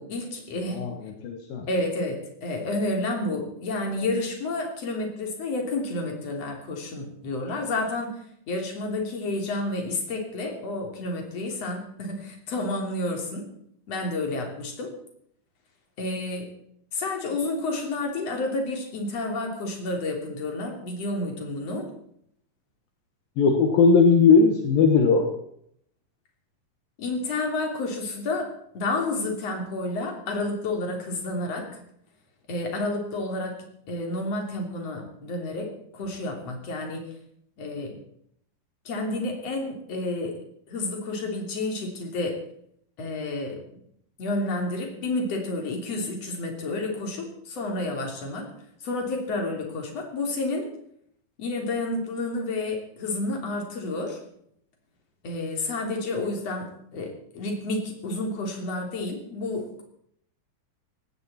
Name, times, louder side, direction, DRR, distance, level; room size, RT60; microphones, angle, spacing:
voice 1, 0.0-0.8 1.7-8.1 8.5-13.5 13.9-14.9 16.0-16.5 16.9-21.9 27.0-28.5 28.7-31.7 32.5-33.6 33.9-37.1 37.6-38.0 38.9-40.4 40.7-42.4 43.0-43.6 44.2-48.5 48.8-50.7 51.4-54.2 55.2-59.8, left 2 dB, 45° left, 2 dB, 4.1 m, -30 dB
voice 2, 0.7-1.7 23.4-25.3, left 5 dB, 75° left, 3 dB, 3.2 m, -19 dB
18.5 x 16.5 x 4.3 m, 0.69 s
omnidirectional pair, 4.2 m